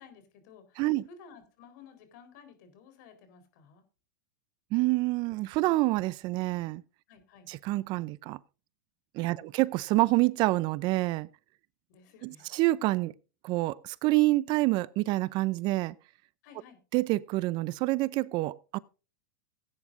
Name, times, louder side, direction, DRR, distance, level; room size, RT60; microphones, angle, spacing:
voice 1, 0.0-3.8 7.1-7.5 9.3-9.5 11.9-12.5 16.4-16.8, left 6 dB, 65° left, 4.0 m, -54 dB
voice 2, 4.7-6.8 7.5-8.4 9.1-11.3 12.2-13.1 13.4-15.9 16.9-18.8, right 19 dB, 45° right, 0.6 m, -27 dB
18.0 x 9.6 x 2.6 m
hypercardioid pair, 110°, 10 cm